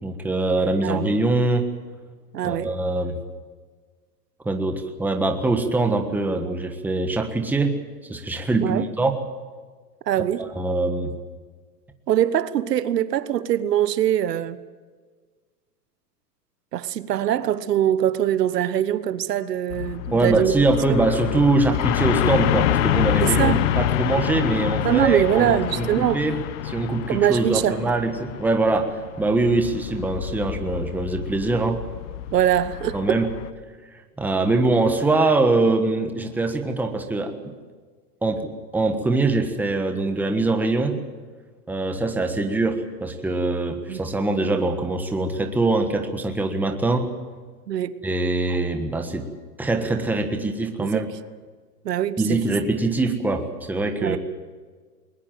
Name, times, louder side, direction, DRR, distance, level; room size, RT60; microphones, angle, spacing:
voice 1, 0.0-1.7 2.4-3.2 4.4-7.8 8.1-9.1 10.5-11.1 20.1-31.9 32.9-33.3 33.9-37.5 38.2-41.0 41.7-47.1 48.0-49.3 49.6-51.1 52.2-54.2, right 2 dB, 5° right, 1.4 m, -23 dB
voice 2, 0.8-1.1 2.3-2.7 8.6-8.9 10.1-10.5 12.1-14.6 16.7-20.5 20.9-21.0 23.2-23.7 24.8-26.2 27.1-27.8 32.3-33.0 43.9-44.0 47.7-47.9 50.8-51.1 51.8-52.4 54.0-54.2, right 11 dB, 75° right, 1.4 m, -22 dB
sound 1, 19.7-33.5, left 12 dB, 50° left, 1.1 m, -27 dB
21.0 x 20.5 x 7.7 m
hypercardioid pair, 150°, 48 cm